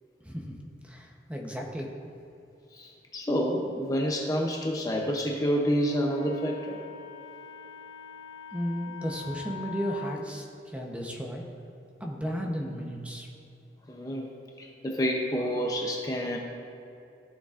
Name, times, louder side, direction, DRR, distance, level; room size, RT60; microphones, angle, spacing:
voice 1, 0.2-0.5 0.8-1.9 8.5-11.4 12.0-13.3, equal, 5° right, 0 dB, 0.8 m, -34 dB
voice 2, 2.7-6.8 13.9-16.4, equal, 20° left, -1 dB, 0.6 m, -29 dB
Wind instrument woodwind instrument, 5.8-10.2, left 7 dB, 70° left, 1.6 m, -43 dB
15.0 x 6.8 x 2.5 m, 2.7 s
head